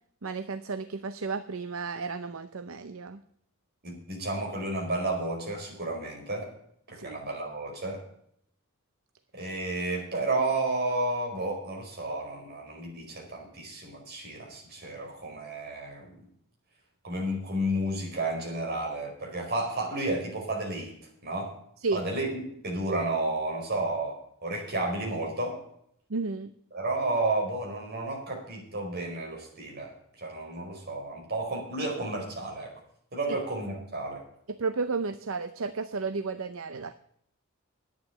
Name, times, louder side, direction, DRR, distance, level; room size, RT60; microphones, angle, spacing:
voice 1, 0.2-3.2 6.9-7.2 21.8-22.0 26.1-26.5 33.3-33.4 34.6-36.9, right 4 dB, 65° right, 11 dB, 0.7 m, -33 dB
voice 2, 3.8-6.5 6.9-8.0 9.3-16.2 17.0-20.9 21.2-21.6 21.9-24.2 24.4-25.6 26.7-29.9 30.2-32.7 33.1-34.2, right 2 dB, 45° right, 0 dB, 4.8 m, -32 dB
11.0 x 9.4 x 6.9 m, 0.68 s
head